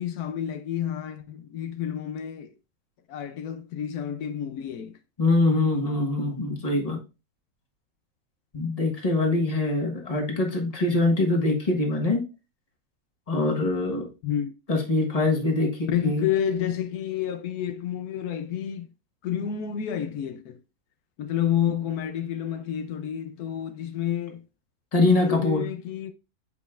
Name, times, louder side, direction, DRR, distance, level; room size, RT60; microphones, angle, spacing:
voice 1, 0.0-2.5 3.1-5.0 14.2-14.5 15.9-18.9 19.2-20.6 21.2-24.4 25.0-26.1, left 9 dB, 80° left, 1.1 m, -29 dB
voice 2, 5.2-7.0 8.5-12.2 13.3-14.1 14.7-16.3 24.9-25.7, left 2 dB, 25° left, 1.4 m, -24 dB
7.9 x 5.1 x 2.4 m
omnidirectional pair, 1.6 m